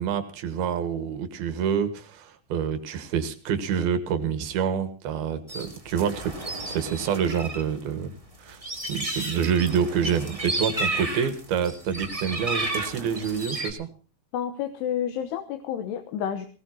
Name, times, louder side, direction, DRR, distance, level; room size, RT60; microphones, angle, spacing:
voice 1, 0.0-8.1 8.4-8.6 8.9-13.9, right 7 dB, 70° right, 11 dB, 3.1 m, -27 dB
sound 1, 5.5-7.6 7.9-13.7, right 2 dB, 20° right, 1.0 m, -32 dB
voice 2, 14.3-16.5, left 9 dB, 75° left, 7 dB, 3.0 m, -30 dB
20.0 x 18.5 x 2.8 m, 0.37 s
omnidirectional pair, 4.9 m